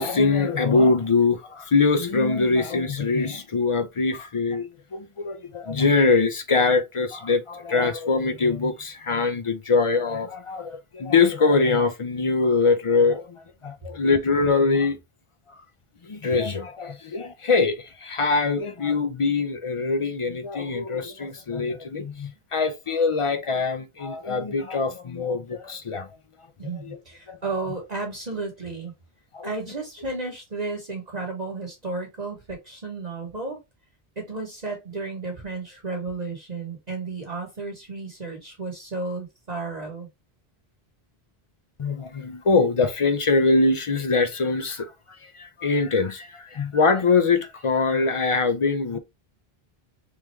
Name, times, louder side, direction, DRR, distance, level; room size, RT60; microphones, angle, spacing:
voice 1, 0.0-15.0 16.0-26.1 26.7-27.0 27.3-27.4 29.3-29.5 41.8-44.9 45.2-49.0, left 4 dB, 40° left, 0.5 m, -23 dB
voice 2, 26.6-28.9 29.4-33.6 34.2-40.1, right 3 dB, 45° right, 1.2 m, -33 dB
3.5 x 3.2 x 3.1 m
omnidirectional pair, 1.0 m